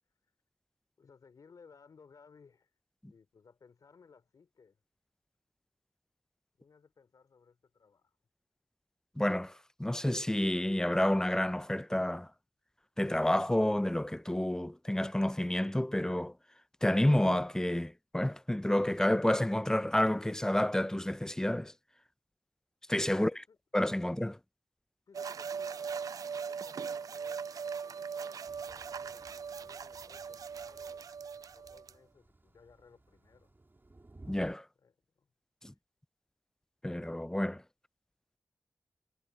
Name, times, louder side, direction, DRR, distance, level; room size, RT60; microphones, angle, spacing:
voice 1, 1.0-2.8 3.0-4.8 6.6-8.2 23.1-23.6 25.1-33.5 34.8-35.3, left 5 dB, 70° left, 3.8 m, -61 dB
voice 2, 9.2-9.5 9.8-12.3 13.0-16.3 16.8-21.7 22.9-23.3 23.7-24.4 34.3-34.6 35.6-35.7 36.8-37.6, left 1 dB, 10° left, 0.4 m, -29 dB
sound 1, 25.1-31.9, right 6 dB, 70° right, 0.4 m, -40 dB
Thunder / Rain, 28.5-34.5, right 2 dB, 35° right, 3.1 m, -58 dB
cardioid pair, 40°, 6 cm